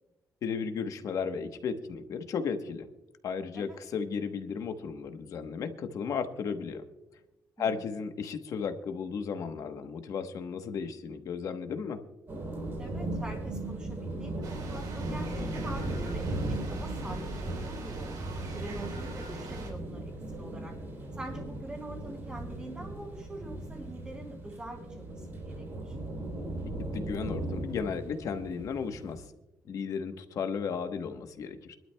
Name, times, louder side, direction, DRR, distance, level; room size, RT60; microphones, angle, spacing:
voice 1, 0.4-2.9 3.2-6.8 7.6-12.0 26.8-29.2 29.7-31.8, left 6 dB, 60° left, 8 dB, 1.0 m, -34 dB
sound 1, 12.3-29.2, right 1 dB, 40° right, 3.4 m, -37 dB
voice 2, 12.8-16.4 16.7-18.1 18.5-20.7 21.1-26.0, right 1 dB, 20° right, -4 dB, 2.5 m, -44 dB
sound 2, 14.4-19.7, right 2 dB, 85° right, 3.8 m, -41 dB
25.5 x 12.0 x 2.2 m, 0.99 s
cardioid pair, 165°, 6 cm